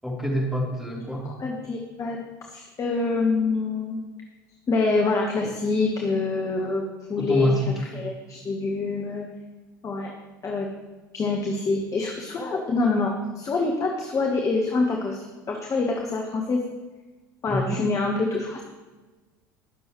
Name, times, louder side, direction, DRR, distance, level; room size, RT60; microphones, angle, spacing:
voice 1, 0.0-1.3 7.2-7.7 17.5-17.8, right 1 dB, ahead, -4 dB, 3.6 m, -26 dB
voice 2, 1.2-2.2 2.5-4.0 4.7-6.8 7.1-7.5 7.9-9.3 9.8-10.1 10.4-10.7 11.1-16.6 17.4-18.7, left 3 dB, 30° left, 1 dB, 1.4 m, -26 dB
19.5 x 7.0 x 3.1 m, 1.3 s
figure-of-eight pair, 70°, 10 cm